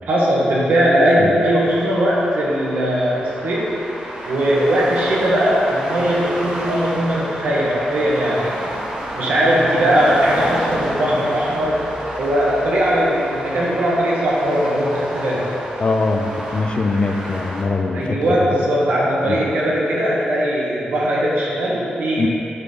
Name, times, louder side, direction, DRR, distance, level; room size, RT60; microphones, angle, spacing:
voice 1, 0.1-3.7 4.2-8.7 9.1-11.8 12.2-15.5 17.9-22.3, equal, 70° right, -5 dB, 1.1 m, -19 dB
sound 1, 1.6-17.6, right 1 dB, 30° right, 1.1 m, -30 dB
voice 2, 15.8-18.5 19.2-19.4 22.2-22.3, left 3 dB, 35° left, 4 dB, 0.5 m, -22 dB
8.3 x 3.6 x 3.9 m, 2.9 s
wide cardioid pair, 130°, 3 cm